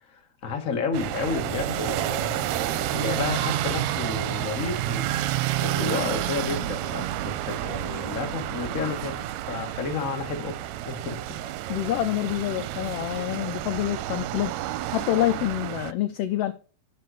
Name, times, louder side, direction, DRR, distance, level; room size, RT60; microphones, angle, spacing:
voice 1, 0.1-5.1 5.6-9.1 9.5-10.6 10.8-11.2, left 5 dB, 35° left, 1.5 m, -31 dB
sound 1, 0.9-15.9, right 13 dB, 80° right, 1.8 m, -30 dB
voice 2, 11.7-14.5 14.9-16.5, left 13 dB, 75° left, 1.4 m, -27 dB
11.5 x 4.2 x 6.4 m
omnidirectional pair, 3.4 m